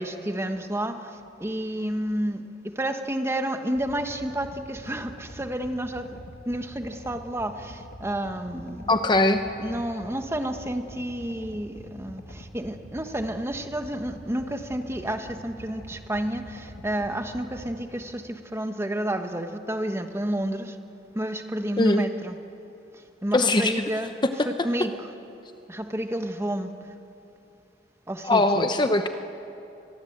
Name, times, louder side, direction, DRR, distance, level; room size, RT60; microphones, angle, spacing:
voice 1, 0.0-9.1 9.6-20.8 21.1-22.4 22.9-25.1 25.7-26.7 28.1-28.7, right 1 dB, 15° right, 6 dB, 1.2 m, -30 dB
sound 1, 3.8-17.8, equal, 55° left, 2.1 m, -45 dB
voice 2, 8.9-9.4 21.8-22.1 23.3-23.7 28.2-29.1, left 2 dB, 25° left, 7 dB, 0.8 m, -21 dB
25.0 x 21.0 x 8.0 m, 2.8 s
head